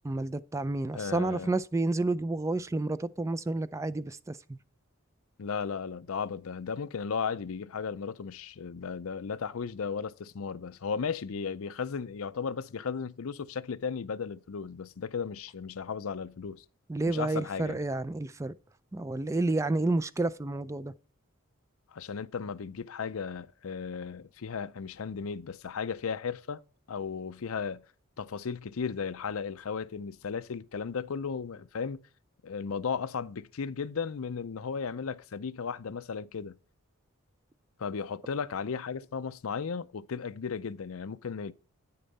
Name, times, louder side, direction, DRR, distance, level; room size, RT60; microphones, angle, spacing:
voice 1, 0.0-4.6 16.9-18.5 18.9-20.9, right 2 dB, 15° right, 0.3 m, -30 dB
voice 2, 0.9-1.5 5.4-16.6 17.1-17.8 21.9-26.6 26.9-27.8 28.2-32.0 32.4-36.5 37.8-41.5, left 6 dB, 80° left, 0.5 m, -35 dB
9.5 x 6.7 x 4.1 m
head